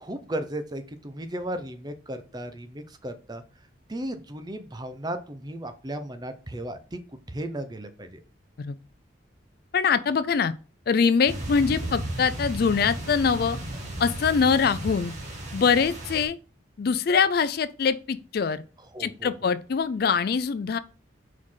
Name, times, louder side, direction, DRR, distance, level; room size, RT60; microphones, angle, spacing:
voice 1, 0.0-3.4 3.9-7.0 7.3-8.2 18.9-19.3, right 1 dB, 20° right, 0.7 m, -35 dB
voice 2, 9.7-10.5 10.9-13.6 14.0-15.1 15.5-16.4 16.8-18.6 19.0-20.8, left 6 dB, 50° left, 0.3 m, -23 dB
sound 1, 11.3-16.2, right 1 dB, 35° right, 1.5 m, -34 dB
4.7 x 4.3 x 5.6 m
head